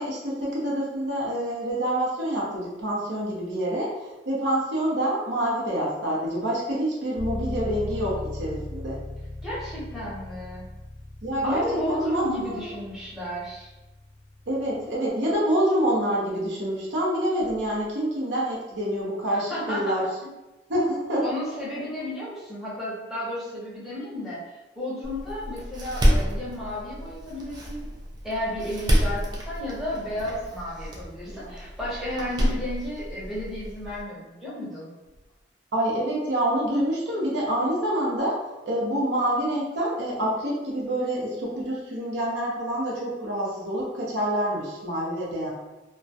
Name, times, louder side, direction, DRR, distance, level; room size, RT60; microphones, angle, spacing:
voice 1, 0.0-9.0 11.2-12.6 14.5-20.0 20.7-21.2 31.3-31.6 35.7-38.4 38.7-45.5, right 1 dB, 80° right, -4 dB, 0.7 m, -27 dB
sound 1, 7.1-14.9, left 1 dB, 80° left, 0.4 m, -38 dB
voice 2, 9.4-10.7 11.4-13.7 19.3-20.0 21.2-24.4 24.8-27.9 28.2-34.9, left 1 dB, ahead, -9 dB, 0.7 m, -33 dB
Door, 25.0-34.0, equal, 25° right, 0.4 m, -28 dB
2.2 x 2.1 x 2.6 m, 1.1 s
head